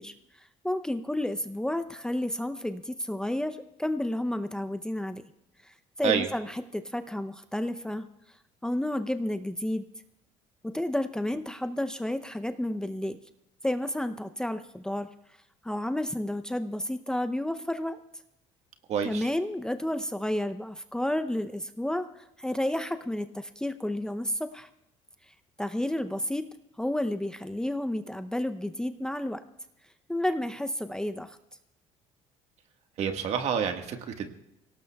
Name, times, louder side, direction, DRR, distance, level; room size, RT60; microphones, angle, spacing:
voice 1, 0.0-5.2 5.6-8.0 8.6-9.9 10.7-13.2 13.6-15.1 15.6-18.0 19.0-24.7 25.3-26.5 26.8-29.4 30.1-31.4, left 1 dB, 5° left, 9 dB, 0.6 m, -31 dB
voice 2, 18.9-19.3 33.0-34.3, right 7 dB, 60° right, 5 dB, 1.6 m, -28 dB
23.5 x 17.5 x 2.3 m, 0.86 s
cardioid pair, 95°, 13 cm